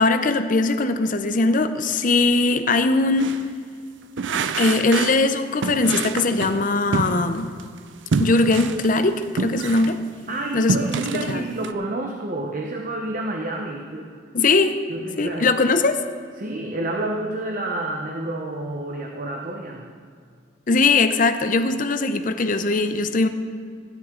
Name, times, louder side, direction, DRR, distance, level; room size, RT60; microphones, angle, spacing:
voice 1, 0.0-3.4 4.6-7.5 8.2-10.0 10.5-10.8 11.1-11.4 14.3-14.8 15.2-16.0 20.7-23.3, left 3 dB, 45° left, 9 dB, 0.6 m, -20 dB
sound 1, 3.1-3.5 4.2-5.3 5.6-7.7 8.1-10.0 10.4-11.7, right 4 dB, 80° right, 0.5 m, -27 dB
voice 2, 10.3-14.1 14.9-15.5 16.4-20.0, right 2 dB, 45° right, 2 dB, 0.8 m, -29 dB
15.5 x 10.5 x 3.8 m, 2.2 s
head